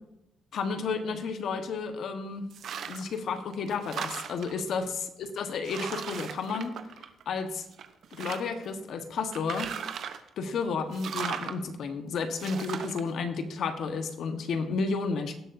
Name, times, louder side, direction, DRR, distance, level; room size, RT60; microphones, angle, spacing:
voice 1, 0.5-2.4 2.9-6.7 7.2-7.7 8.1-9.7 10.4-15.4, left 4 dB, 65° left, 7 dB, 1.3 m, -32 dB
sound 1, 2.5-3.2 3.5-4.6 5.2-5.3 5.6-7.4 7.7-8.7 9.3-10.3 10.9-11.6 12.4-13.0, right 8 dB, 70° right, 0.8 m, -37 dB
17.5 x 7.7 x 2.7 m, 0.82 s
cardioid pair, 90°, 0 cm